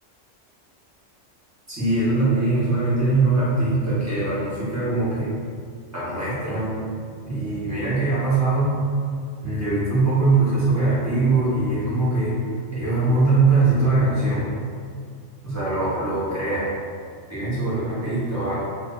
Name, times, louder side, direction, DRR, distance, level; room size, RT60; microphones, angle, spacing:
voice 1, 1.7-5.3 5.9-6.7 7.3-8.7 9.4-12.3 12.7-14.5 15.4-16.7 17.3-18.5, right 3 dB, 15° right, -12 dB, 1.2 m, -22 dB
2.7 x 2.7 x 3.7 m, 2.2 s
omnidirectional pair, 1.3 m